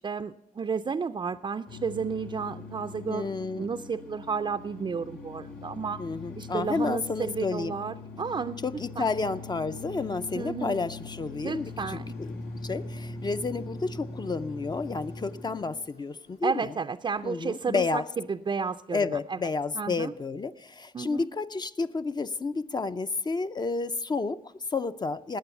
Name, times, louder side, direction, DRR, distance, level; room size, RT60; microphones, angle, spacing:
voice 1, 0.0-3.3 3.6-6.0 6.4-8.6 9.0-9.1 10.3-10.8 11.4-12.1 16.4-19.4 19.8-20.1 20.9-21.3, right 5 dB, 30° right, 9 dB, 0.4 m, -32 dB
sound 1, 1.7-15.7, left 3 dB, 90° left, 2.6 m, -41 dB
voice 2, 3.1-3.7 6.0-7.8 8.6-16.7 17.2-18.1 18.9-25.4, left 4 dB, 30° left, 11 dB, 0.5 m, -31 dB
sound 2, 10.7-16.4, left 3 dB, 60° left, 6.2 m, -62 dB
19.0 x 8.3 x 7.0 m, 0.86 s
cardioid pair, 105°, 15 cm